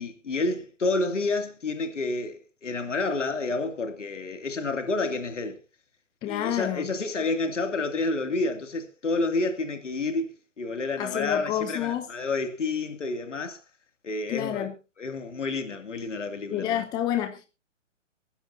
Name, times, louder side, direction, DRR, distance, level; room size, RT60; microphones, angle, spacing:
voice 1, 0.0-5.6 6.2-13.6 14.0-14.7 15.0-16.8, left 3 dB, 70° left, 2.5 m, -29 dB
voice 2, 6.2-6.9 11.0-12.1 14.3-14.7 16.5-17.5, left 11 dB, 10° left, 0.7 m, -28 dB
24.5 x 10.0 x 2.7 m
figure-of-eight pair, 130°, 37 cm